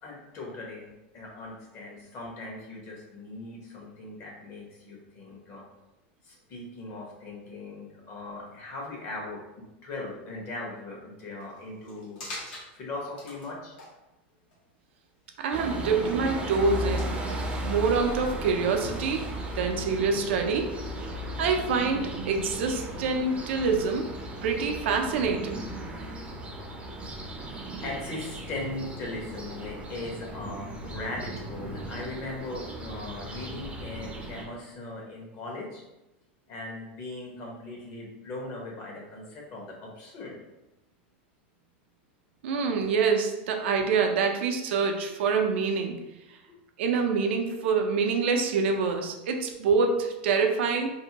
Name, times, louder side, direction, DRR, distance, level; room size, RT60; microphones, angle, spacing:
voice 1, 0.0-5.6 6.2-9.4 9.8-12.2 12.7-13.7 27.8-35.8 36.5-40.4 46.5-46.6, left 2 dB, 45° left, -2 dB, 0.9 m, -39 dB
sound 1, 11.4-11.6 11.8-12.7 13.2-13.5 13.8-13.9 14.5-14.6 15.3-16.2 16.5-17.1 18.3-18.4, left 2 dB, 75° left, 0.9 m, -43 dB
voice 2, 15.4-17.1 17.6-19.3 19.6-20.8 21.4-24.1 24.4-25.6 42.4-46.0 46.8-50.9, right 5 dB, 75° right, 4 dB, 0.4 m, -26 dB
sound 2, 15.5-34.5, right 1 dB, 20° right, 0.5 m, -36 dB
2.6 x 2.1 x 2.8 m, 0.97 s
supercardioid pair, 125°, 6 cm